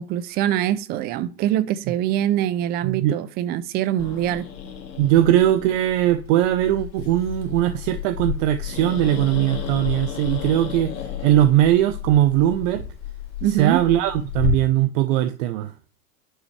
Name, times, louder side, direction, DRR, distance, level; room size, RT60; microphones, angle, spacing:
voice 1, 0.0-4.5 13.4-13.8, right 12 dB, 20° right, 0.4 m, -24 dB
voice 2, 2.8-3.2 5.0-10.9 11.2-12.8 13.6-15.7, right 13 dB, 50° right, 0.8 m, -20 dB
Growling, 4.0-14.5, left 8 dB, 85° left, 2.7 m, -33 dB
11.0 x 6.0 x 3.2 m
hypercardioid pair, 110°, 49 cm